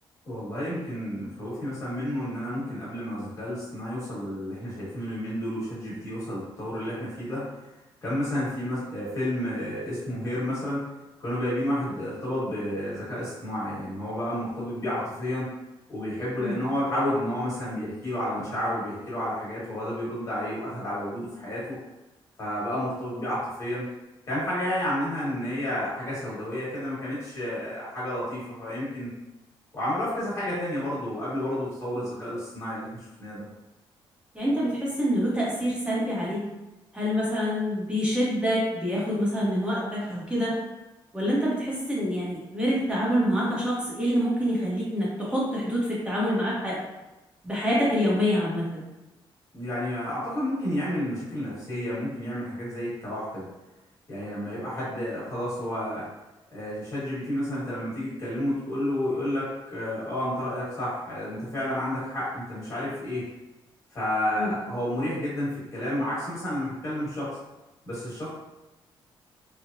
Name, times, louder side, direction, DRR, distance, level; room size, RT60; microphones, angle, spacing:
voice 1, 0.2-7.5 8.0-10.9 11.2-15.5 15.9-21.8 22.4-23.9 24.3-29.1 29.7-33.4 49.5-53.5 54.1-56.1 56.5-63.3 63.9-67.4 67.8-68.3, left 1 dB, 30° left, -9 dB, 1.3 m, -31 dB
voice 2, 34.3-36.5 36.9-40.6 41.1-46.8 47.4-48.8 64.3-64.5, equal, 10° right, -6 dB, 0.8 m, -26 dB
3.0 x 2.1 x 2.5 m, 1.0 s
wide cardioid pair, 170°, 10 cm